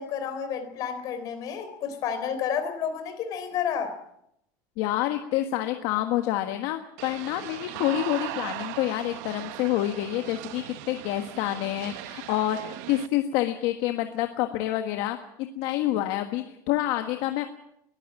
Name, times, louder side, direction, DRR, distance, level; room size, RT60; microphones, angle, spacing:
voice 1, 0.0-3.9, left 7 dB, 40° left, 8 dB, 3.9 m, -30 dB
voice 2, 4.8-17.5, left 14 dB, 55° left, 6 dB, 1.5 m, -28 dB
sound 1, 7.0-13.1, right 16 dB, 60° right, 1.0 m, -38 dB
21.5 x 14.5 x 8.8 m, 0.77 s
cardioid pair, 170°, 10 cm